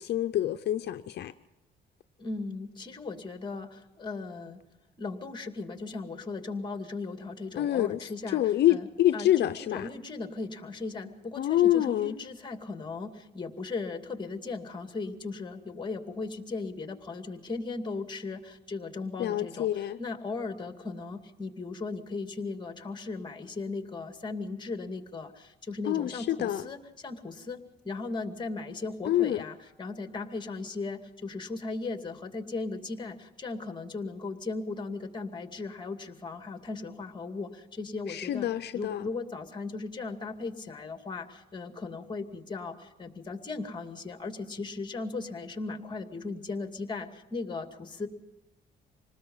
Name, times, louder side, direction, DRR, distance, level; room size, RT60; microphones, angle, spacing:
voice 1, 0.0-1.3 7.6-9.9 11.4-12.1 19.2-20.0 25.9-26.6 29.1-29.4 38.1-39.0, left 13 dB, 65° left, 0.7 m, -27 dB
voice 2, 2.2-4.6 5.0-8.4 8.7-8.9 9.1-9.3 9.6-27.6 27.8-38.5 38.7-48.1, left 3 dB, 25° left, 2.4 m, -37 dB
26.5 x 19.5 x 5.6 m
cardioid pair, 105°, 19 cm